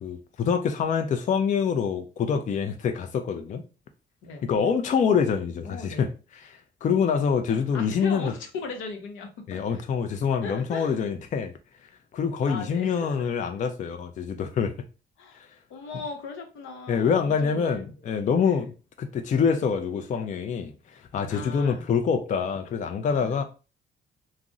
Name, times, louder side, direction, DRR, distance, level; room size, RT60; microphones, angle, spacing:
voice 1, 0.0-3.6 4.4-8.3 9.5-11.5 12.1-14.8 15.3-15.5 16.9-18.7 19.0-23.4, left 6 dB, 40° left, 0.4 m, -26 dB
voice 2, 5.6-6.1 7.5-9.8 10.4-11.0 12.4-13.3 15.2-15.4 15.7-17.8 18.4-18.6 21.3-21.8 23.0-23.4, left 4 dB, 80° left, 0.7 m, -38 dB
2.4 x 2.0 x 3.7 m
cardioid pair, 90°, 20 cm